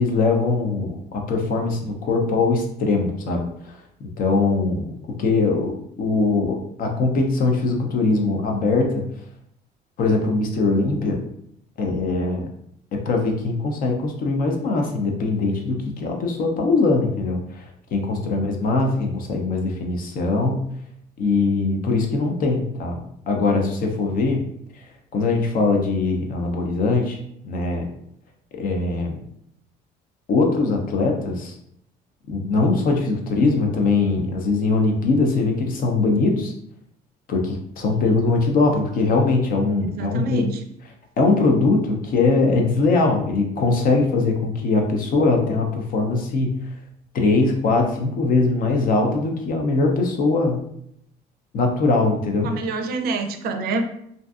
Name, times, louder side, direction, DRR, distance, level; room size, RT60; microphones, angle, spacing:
voice 1, 0.0-3.4 4.2-4.9 5.2-9.0 10.0-11.2 11.8-12.4 12.9-17.6 17.9-20.6 21.2-23.0 23.3-24.4 25.1-27.2 27.4-27.9 28.5-29.1 30.3-31.5 32.3-36.5 37.3-40.4 41.2-46.5 47.1-50.6 51.5-52.5, left 3 dB, 55° left, 2 dB, 0.6 m, -21 dB
voice 2, 18.3-18.8 37.8-38.2 39.9-40.6 52.4-53.9, right 3 dB, 65° right, 5 dB, 0.4 m, -27 dB
2.5 x 2.4 x 2.3 m, 0.72 s
cardioid pair, 110°, 17 cm